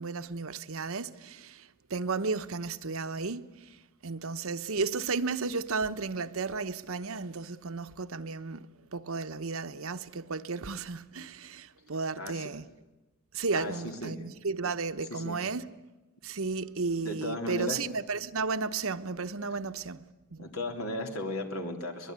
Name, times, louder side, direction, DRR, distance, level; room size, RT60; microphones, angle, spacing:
voice 1, 0.0-3.8 4.0-12.7 13.3-15.7 16.2-20.0 20.3-20.5, right 4 dB, 75° right, 0.9 m, -34 dB
voice 2, 12.2-12.5 13.5-14.3 15.1-15.4 17.0-17.8 20.4-22.1, left 1 dB, 85° left, 3.6 m, -36 dB
24.0 x 21.5 x 9.6 m
head